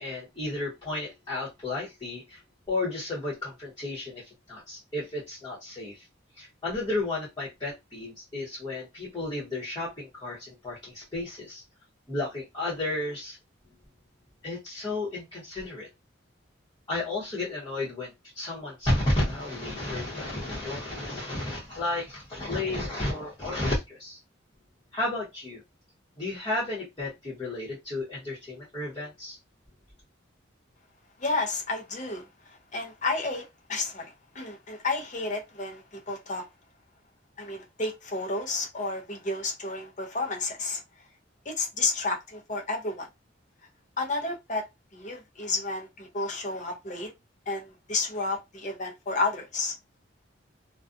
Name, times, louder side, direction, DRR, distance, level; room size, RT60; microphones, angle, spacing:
voice 1, 0.0-2.4 2.7-6.0 6.4-11.6 12.1-13.4 14.4-15.9 16.9-24.2 24.9-25.6 26.2-29.4, left 2 dB, 20° left, 1.0 m, -32 dB
voice 2, 31.2-32.3 32.7-36.4 37.4-40.8 41.5-43.1 44.0-44.6 44.9-47.1 47.5-49.7, left 3 dB, 40° left, 0.7 m, -31 dB
2.4 x 2.2 x 2.5 m
head